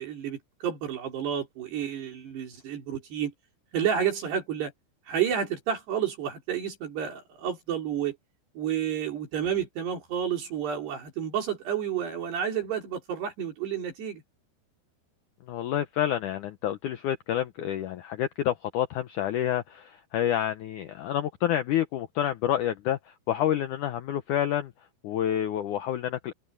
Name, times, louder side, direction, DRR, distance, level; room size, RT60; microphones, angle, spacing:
voice 1, 0.0-3.3 3.7-4.7 5.1-8.2 8.6-14.2, right 9 dB, 75° right, 5.8 m, -30 dB
voice 2, 15.5-23.0 23.3-24.7 25.0-26.3, left 11 dB, 80° left, 1.7 m, -28 dB
open air
omnidirectional pair, 4.9 m